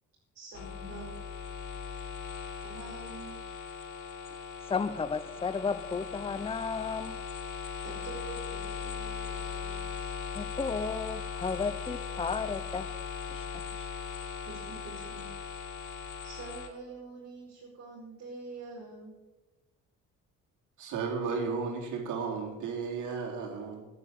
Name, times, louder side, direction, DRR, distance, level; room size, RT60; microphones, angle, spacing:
voice 1, 0.3-1.1 2.6-3.4 7.8-9.9 14.5-15.3 16.2-19.1, right 3 dB, 50° right, -6 dB, 5.5 m, -46 dB
sound 1, 0.5-16.7, left 6 dB, 70° left, 2.0 m, -39 dB
voice 2, 4.7-7.2 10.3-12.9 13.3-13.4 13.7-13.8, left 5 dB, 20° left, 14 dB, 0.7 m, -33 dB
voice 3, 20.8-23.9, right 5 dB, 80° right, -1 dB, 3.7 m, -34 dB
11.0 x 9.7 x 8.7 m, 1.1 s
cardioid pair, 90°, 30 cm